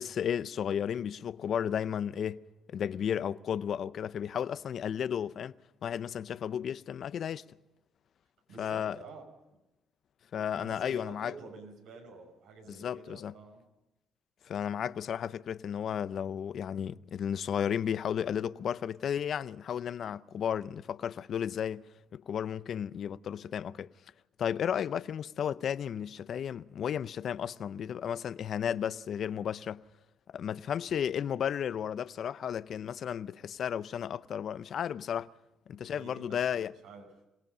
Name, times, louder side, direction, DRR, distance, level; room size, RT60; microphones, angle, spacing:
voice 1, 0.0-2.4 2.7-5.5 5.8-7.4 8.6-9.0 10.3-11.3 12.7-13.3 14.4-21.8 22.1-23.9 24.4-29.8 30.3-35.3 35.7-36.7, left 8 dB, 60° left, 0.6 m, -33 dB
voice 2, 8.5-9.6 10.5-13.6 35.8-37.1, right 3 dB, 85° right, 6.1 m, -50 dB
26.5 x 18.0 x 5.6 m
cardioid pair, 90°, 0 cm